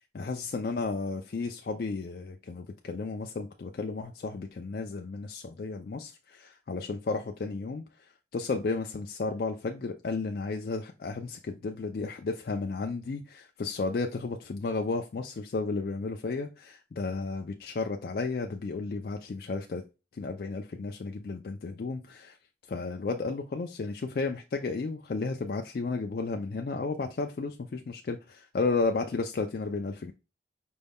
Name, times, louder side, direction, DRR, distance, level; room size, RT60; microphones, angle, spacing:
voice 1, 0.1-7.8 8.3-19.8 20.2-22.4 22.7-30.1, left 3 dB, 55° left, 0.4 m, -33 dB
5.2 x 2.3 x 3.4 m
head